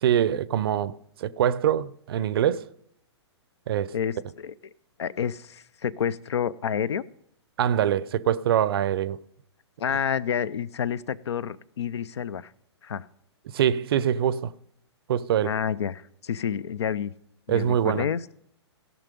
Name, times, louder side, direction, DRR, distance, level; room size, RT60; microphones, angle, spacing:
voice 1, 0.0-2.7 3.7-3.9 7.6-9.2 13.5-14.5 15.1-15.5 17.5-18.1, right 10 dB, 55° right, 0.5 m, -24 dB
voice 2, 3.9-4.5 5.0-7.0 9.8-12.5 12.8-13.1 15.4-17.1 17.5-18.2, left 8 dB, 70° left, 0.5 m, -29 dB
16.5 x 6.0 x 5.2 m
hypercardioid pair, 125°, 15 cm